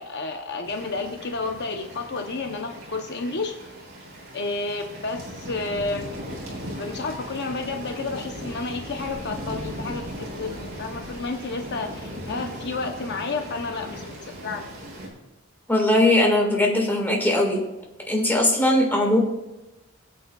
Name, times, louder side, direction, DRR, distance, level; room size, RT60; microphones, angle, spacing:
voice 1, 0.0-3.6 4.3-6.1 6.8-14.7, left 3 dB, 50° left, 4 dB, 0.8 m, -31 dB
sound 1, 0.6-15.1, equal, 45° right, 4.0 m, -38 dB
voice 2, 15.7-17.6 18.1-19.2, left 1 dB, 10° left, -1 dB, 1.8 m, -20 dB
23.5 x 8.4 x 2.3 m, 1.0 s
head